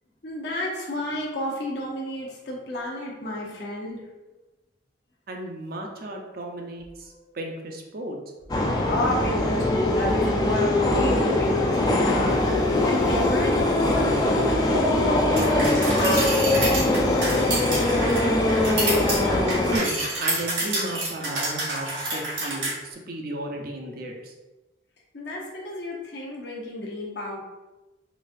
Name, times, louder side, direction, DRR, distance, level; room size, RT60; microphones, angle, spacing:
voice 1, 0.2-4.0 7.2-7.3 8.8-17.5 25.1-27.4, left 1 dB, 60° left, -3 dB, 0.7 m, -31 dB
voice 2, 5.3-8.2 19.7-24.3, right 1 dB, 55° right, 1 dB, 0.5 m, -34 dB
sound 1, 8.5-19.8, left 1 dB, 20° left, 0.4 m, -22 dB
sound 2, 15.4-22.7, right 2 dB, 85° right, 1.3 m, -28 dB
4.0 x 2.4 x 2.5 m, 1.1 s
head